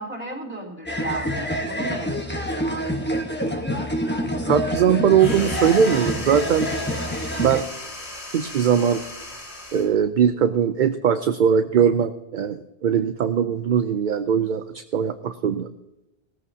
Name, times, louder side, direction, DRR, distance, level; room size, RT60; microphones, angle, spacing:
voice 1, 0.0-2.8, right 2 dB, 10° right, 0 dB, 3.4 m, -35 dB
sound 1, 0.9-7.6, equal, 10° left, 1.1 m, -27 dB
voice 2, 4.5-6.7 7.4-7.7 8.3-9.0 9.7-15.7, right 8 dB, 55° right, 9 dB, 0.6 m, -20 dB
sound 2, 5.1-10.0, left 1 dB, 80° left, 3.1 m, -36 dB
18.5 x 14.0 x 2.8 m, 0.94 s
omnidirectional pair, 1.1 m